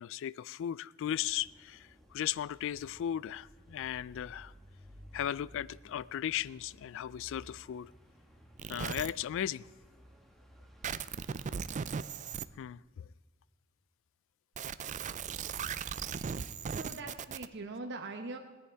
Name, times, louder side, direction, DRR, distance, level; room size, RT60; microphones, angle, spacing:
voice 1, 0.0-4.5 5.1-7.9 8.7-9.7 12.6-13.1, left 10 dB, 65° left, 0.3 m, -36 dB
sound 1, 1.0-11.6, equal, ahead, 1.4 m, -57 dB
sound 2, 8.6-9.1 10.8-12.4 14.6-17.5, right 6 dB, 35° right, 0.4 m, -37 dB
voice 2, 16.7-18.4, right 3 dB, 55° right, 0.9 m, -42 dB
18.0 x 10.0 x 4.6 m
head